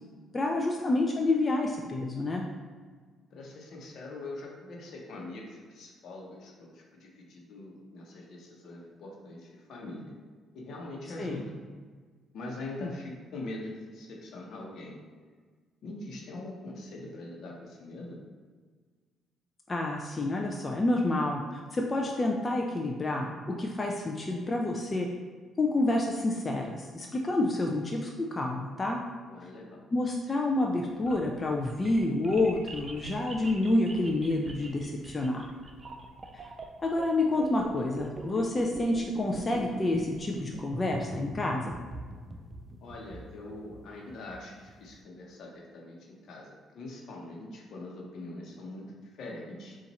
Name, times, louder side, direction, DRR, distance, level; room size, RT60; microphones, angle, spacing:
voice 1, 0.3-2.4 11.2-11.4 12.8-12.9 19.7-23.3 23.6-25.1 25.6-29.0 29.9-35.5 36.3-36.4 36.8-41.8, left 2 dB, 30° left, 0 dB, 0.4 m, -28 dB
voice 2, 3.3-10.1 10.5-11.5 12.3-15.0 15.8-18.2 29.2-29.8 42.8-49.8, left 2 dB, 65° left, -1 dB, 0.9 m, -43 dB
sound 1, 30.8-44.9, right 2 dB, 35° right, 0.4 m, -43 dB
4.1 x 2.5 x 4.1 m, 1.5 s
cardioid pair, 85°, 0 cm